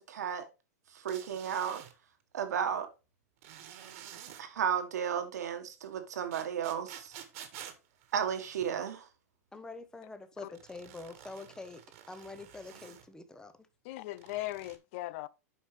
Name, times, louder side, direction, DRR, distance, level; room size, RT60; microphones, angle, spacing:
voice 1, 0.1-0.4 0.9-1.8 2.3-2.9 4.4-7.1 8.1-9.1, right 8 dB, 75° right, 1.5 m, -33 dB
sound 1, 1.1-1.9 3.4-4.4 6.3-8.9 10.5-13.1 14.1-14.8, right 10 dB, 60° right, 1.5 m, -50 dB
voice 2, 9.5-11.8 12.1-13.5, left 3 dB, 10° left, 0.9 m, -45 dB
voice 3, 13.8-15.3, left 17 dB, 55° left, 0.5 m, -39 dB
8.7 x 5.4 x 3.3 m
hypercardioid pair, 110°, 9 cm